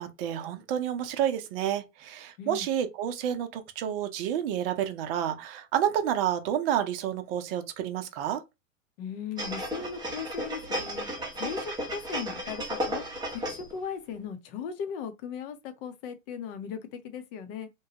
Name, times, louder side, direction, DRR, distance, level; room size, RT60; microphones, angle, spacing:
voice 1, 0.0-8.4, right 10 dB, 45° right, 0.7 m, -29 dB
voice 2, 9.0-11.1 11.4-13.0 13.4-17.7, left 7 dB, 45° left, 0.8 m, -38 dB
sound 1, 9.4-13.8 14.2-14.3, equal, 10° right, 0.7 m, -34 dB
2.9 x 2.2 x 2.8 m
hypercardioid pair, 125°, 40 cm